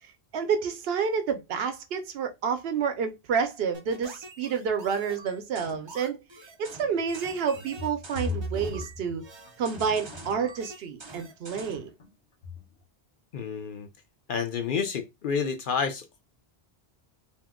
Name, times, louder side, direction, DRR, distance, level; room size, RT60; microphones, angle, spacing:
voice 1, 0.3-9.2 9.6-11.9, right 6 dB, 70° right, 0.8 m, -29 dB
sound 1, 3.7-11.9, right 2 dB, 35° right, 0.5 m, -45 dB
sound 2, 6.9-10.4 11.8-12.1 12.4-12.8, left 2 dB, 75° left, 1.1 m, -38 dB
voice 2, 13.3-13.9 14.3-16.2, left 6 dB, 60° left, 0.7 m, -29 dB
2.8 x 2.1 x 3.5 m
omnidirectional pair, 1.1 m